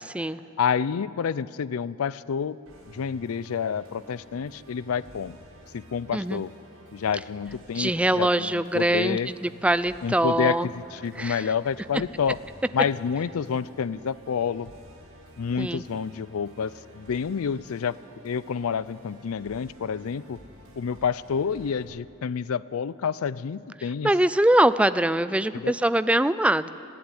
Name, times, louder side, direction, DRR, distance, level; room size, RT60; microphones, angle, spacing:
voice 1, 0.6-2.6 2.9-5.4 5.7-6.5 6.9-9.3 10.0-12.4 12.7-14.7 15.4-18.0 18.2-20.4 20.8-24.1 25.5-25.7, left 6 dB, 85° left, 19 dB, 0.4 m, -28 dB
Musical instrument, 2.7-21.9, equal, 85° right, 5.8 m, -51 dB
voice 2, 7.8-10.7 11.2-11.4 15.6-15.8 24.0-26.7, right 1 dB, 5° right, 14 dB, 0.4 m, -23 dB
20.0 x 15.5 x 9.7 m, 2.6 s
head